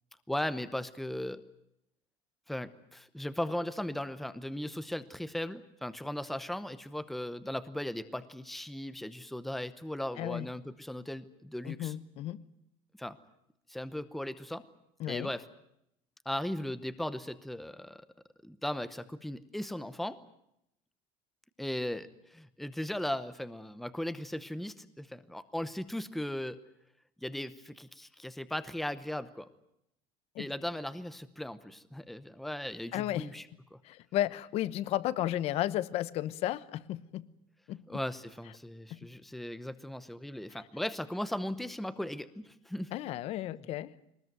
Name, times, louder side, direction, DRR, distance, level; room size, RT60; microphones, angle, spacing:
voice 1, 0.3-1.4 2.5-11.9 13.0-13.2 13.7-14.6 15.1-15.4 16.2-18.0 18.4-20.2 21.6-26.6 27.2-29.5 30.4-33.5 33.7-33.8 37.9-42.9 43.5-43.6, left 1 dB, ahead, 13 dB, 0.9 m, -37 dB
voice 2, 11.6-12.4 15.0-15.3 30.3-30.5 32.9-33.3 33.8-37.3 37.7-37.8 38.9-39.0 42.9-43.9, left 13 dB, 50° left, 16 dB, 1.0 m, -33 dB
22.0 x 20.0 x 9.2 m, 0.79 s
cardioid pair, 165°, 13 cm